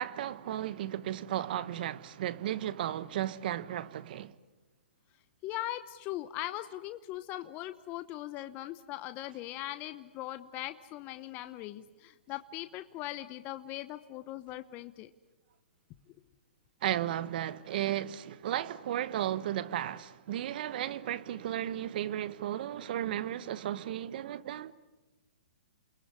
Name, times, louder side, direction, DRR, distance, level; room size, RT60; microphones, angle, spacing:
voice 1, 0.0-4.4 16.8-24.7, right 12 dB, 55° right, 1.2 m, -34 dB
voice 2, 5.4-15.1, left 15 dB, 30° left, 0.9 m, -40 dB
29.0 x 20.5 x 9.8 m
hypercardioid pair, 140°, 6 cm